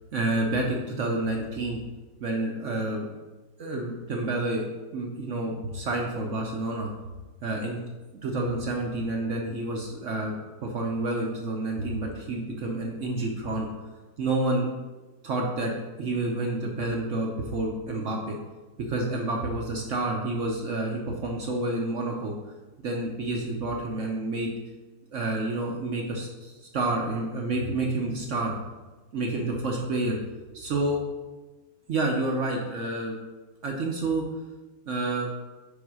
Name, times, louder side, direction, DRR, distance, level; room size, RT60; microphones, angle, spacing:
voice 1, 0.1-1.8 2.2-3.1 3.6-4.7 4.9-6.9 7.4-7.8 8.2-10.3 10.6-13.7 14.2-14.7 15.2-15.7 16.0-18.4 18.9-22.3 22.8-24.5 25.1-28.5 29.1-30.2 30.5-31.0 31.9-33.2 33.6-34.3 34.9-35.3, right 2 dB, 65° right, 0 dB, 0.8 m, -29 dB
5.3 x 5.1 x 4.7 m, 1.2 s
omnidirectional pair, 2.1 m